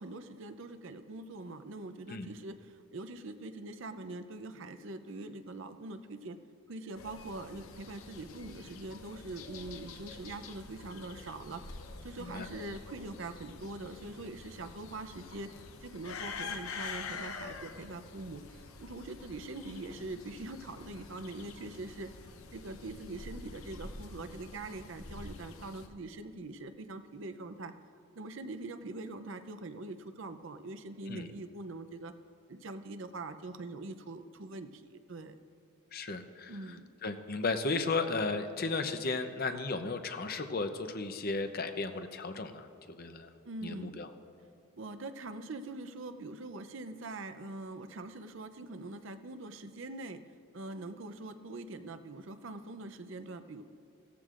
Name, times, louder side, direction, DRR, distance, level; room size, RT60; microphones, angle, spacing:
voice 1, 0.0-6.4 6.7-11.6 12.0-22.1 22.5-27.7 28.2-32.1 32.5-35.4 36.5-36.9 43.4-44.0 44.8-50.2 50.5-53.6, right 2 dB, 60° right, 10 dB, 0.6 m, -43 dB
sound 1, 6.9-25.9, left 4 dB, 75° left, 0.9 m, -46 dB
voice 2, 35.9-36.5 37.0-43.3 43.6-44.1, left 3 dB, 45° left, 8 dB, 0.6 m, -34 dB
17.0 x 14.0 x 2.5 m, 2.6 s
head